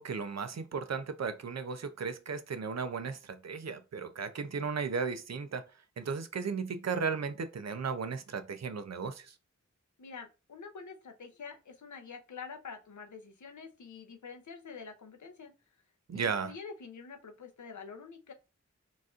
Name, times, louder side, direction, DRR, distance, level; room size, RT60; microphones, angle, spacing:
voice 1, 0.0-5.6 6.0-9.3 16.1-16.5, right 5 dB, 65° right, 0.5 m, -35 dB
voice 2, 10.0-15.5 16.1-18.3, left 5 dB, 85° left, 0.6 m, -47 dB
4.0 x 2.5 x 2.4 m
wide cardioid pair, 55°, 29 cm